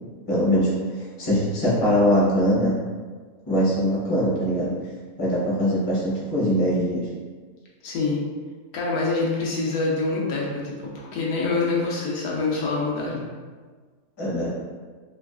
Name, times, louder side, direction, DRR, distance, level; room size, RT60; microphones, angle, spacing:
voice 1, 0.3-2.7 3.5-4.7 5.2-7.1 14.2-14.5, equal, 25° left, -8 dB, 0.5 m, -22 dB
voice 2, 7.8-8.2 8.7-13.3, left 3 dB, 80° left, -4 dB, 1.2 m, -25 dB
3.3 x 2.4 x 2.3 m, 1.5 s
omnidirectional pair, 1.6 m